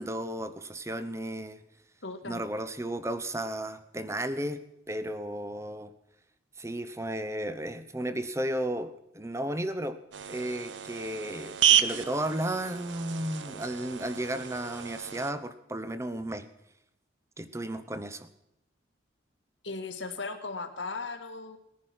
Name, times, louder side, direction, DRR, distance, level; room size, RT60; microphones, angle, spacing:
voice 1, 0.0-1.6 2.3-5.9 6.6-10.0 10.3-16.5 17.4-18.3, right 1 dB, 15° right, 12 dB, 0.8 m, -34 dB
voice 2, 2.0-2.4 19.6-21.6, left 3 dB, 80° left, 7 dB, 1.7 m, -37 dB
sound 1, 10.1-15.3, right 10 dB, 75° right, 0.7 m, -30 dB
19.0 x 10.5 x 5.9 m, 0.86 s
head